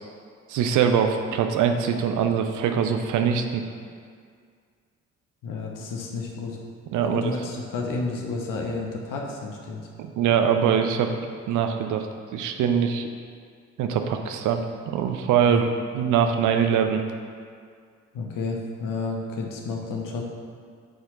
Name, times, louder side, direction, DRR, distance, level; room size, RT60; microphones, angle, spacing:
voice 1, 0.5-3.6 6.9-7.3 10.0-11.1 11.5-12.1 12.3-13.1 13.8-15.7 15.9-17.0, right 7 dB, 50° right, 6 dB, 0.7 m, -23 dB
voice 2, 5.4-6.6 7.0-9.8 15.4-15.6 18.1-20.2, left 3 dB, 55° left, 0 dB, 1.1 m, -31 dB
7.7 x 4.4 x 3.8 m, 2.1 s
figure-of-eight pair, 40°, 38 cm